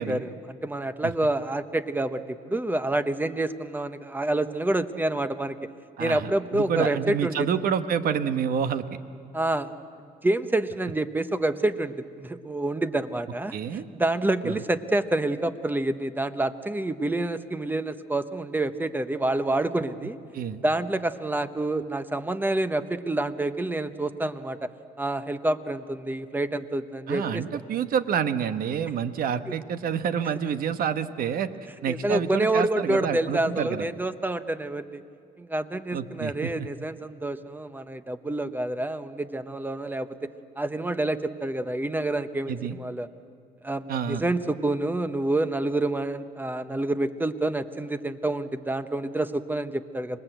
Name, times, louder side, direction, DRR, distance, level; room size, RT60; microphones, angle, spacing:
voice 1, 0.0-5.6 6.0-7.5 9.3-9.7 10.0-20.2 20.6-24.7 25.0-27.5 29.5-29.6 31.9-35.0 35.4-40.3 40.6-43.1 43.6-50.2, right 2 dB, 10° right, 11 dB, 0.9 m, -28 dB
voice 2, 6.0-8.8 13.5-13.9 14.4-14.6 20.3-20.6 27.1-31.5 31.8-33.8 35.9-36.5 42.5-42.8 43.9-44.2, right 7 dB, 60° right, 11 dB, 1.1 m, -28 dB
26.0 x 20.0 x 8.0 m, 2.3 s
cardioid pair, 110°, 17 cm